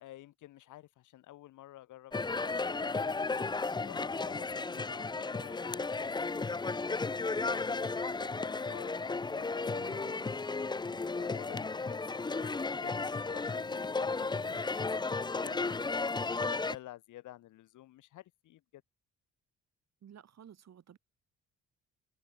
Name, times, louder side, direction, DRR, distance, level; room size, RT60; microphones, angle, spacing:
voice 1, 0.0-3.5 3.8-10.2 10.9-18.8, left 15 dB, 80° left, 1.5 m, -52 dB
sound 1, 2.1-16.8, left 3 dB, 15° left, 0.6 m, -34 dB
voice 2, 9.7-10.3 20.0-21.0, right 9 dB, 60° right, 6.9 m, -54 dB
cardioid pair, 90°, 30 cm